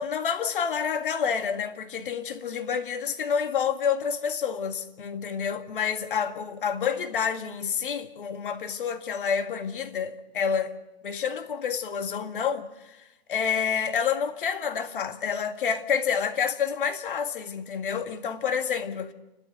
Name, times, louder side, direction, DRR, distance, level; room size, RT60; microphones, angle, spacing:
voice 1, 0.0-10.7 11.0-13.0 13.3-19.1, left 7 dB, 55° left, 2.0 m, -28 dB
29.5 x 13.0 x 6.7 m
hypercardioid pair, 155°, 31 cm